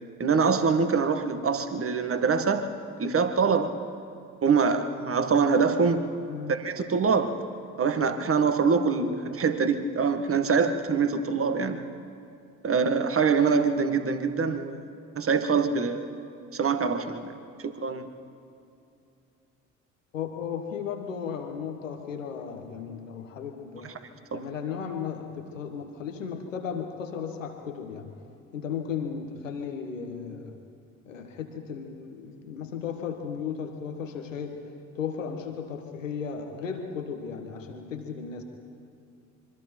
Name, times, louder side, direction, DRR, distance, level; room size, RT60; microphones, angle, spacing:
voice 1, 0.2-2.7 3.0-3.8 4.4-6.1 6.5-7.4 7.8-11.8 12.6-14.9 15.2-16.1 16.5-17.3 17.6-18.1 24.3-24.4, right 5 dB, 35° right, 8 dB, 1.7 m, -24 dB
voice 2, 20.1-23.9 24.3-28.1 28.5-30.5 31.1-34.6 34.9-38.4, left 7 dB, 85° left, 4 dB, 1.3 m, -35 dB
26.0 x 23.5 x 4.5 m, 2.6 s
figure-of-eight pair, 50°, 38 cm